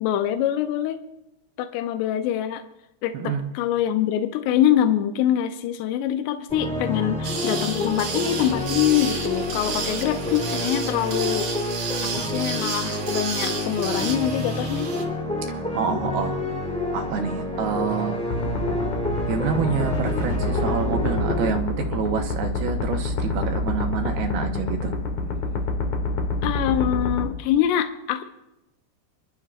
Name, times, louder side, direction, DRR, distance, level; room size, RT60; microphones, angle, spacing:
voice 1, 0.0-1.0 1.6-2.6 3.0-11.7 12.0-14.9 26.4-28.2, left 11 dB, 80° left, 7 dB, 2.8 m, -24 dB
voice 2, 3.1-3.5 7.0-7.1 15.5-16.4 16.9-18.2 19.3-24.9, right 6 dB, 70° right, 4 dB, 2.8 m, -27 dB
sound 1, 6.5-21.5, left 1 dB, 5° left, 0.8 m, -29 dB
sound 2, 7.2-15.0, right 5 dB, 55° right, 2.6 m, -32 dB
sound 3, 18.3-27.3, left 2 dB, 60° left, 2.0 m, -27 dB
28.0 x 12.0 x 2.5 m, 0.94 s
omnidirectional pair, 4.9 m